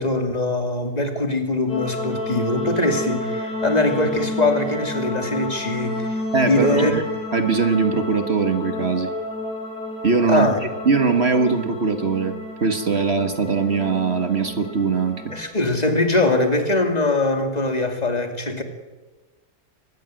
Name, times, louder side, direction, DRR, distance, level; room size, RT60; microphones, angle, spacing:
voice 1, 0.0-7.0 10.3-10.6 15.3-18.6, left 2 dB, 25° left, 5 dB, 2.7 m, -22 dB
sound 1, 1.7-15.4, left 2 dB, 80° left, 8.6 m, -31 dB
voice 2, 6.3-7.0 7.3-9.1 10.0-10.5 10.8-12.3 12.6-15.2, right 4 dB, 45° right, 7 dB, 1.5 m, -21 dB
24.0 x 19.5 x 7.7 m, 1.3 s
omnidirectional pair, 1.7 m